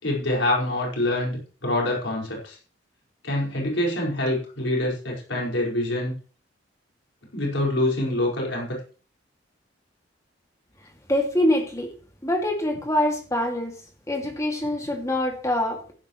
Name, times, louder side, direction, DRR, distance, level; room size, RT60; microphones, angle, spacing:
voice 1, 0.0-2.6 3.2-6.1 7.3-8.8, left 1 dB, 85° left, -2 dB, 5.3 m, -25 dB
voice 2, 11.1-11.9 12.2-13.7 14.1-15.9, left 1 dB, 15° left, 2 dB, 2.4 m, -24 dB
15.0 x 11.5 x 3.2 m, 0.39 s
head